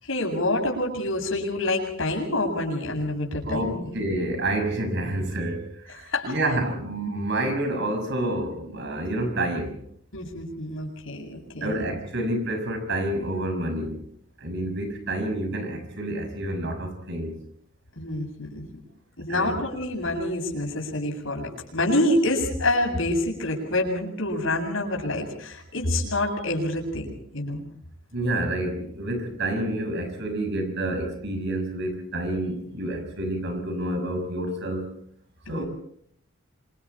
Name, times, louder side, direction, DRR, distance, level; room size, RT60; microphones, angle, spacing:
voice 1, 0.0-3.9 5.9-6.6 10.1-11.8 18.0-18.7 19.2-27.6 35.5-35.6, left 1 dB, 70° left, 0 dB, 7.9 m, -27 dB
voice 2, 3.5-9.8 11.6-14.0 14.4-17.4 19.3-19.6 28.1-35.0 35.5-35.6, right 1 dB, 60° right, 6 dB, 6.2 m, -28 dB
27.5 x 25.5 x 4.4 m, 0.68 s
head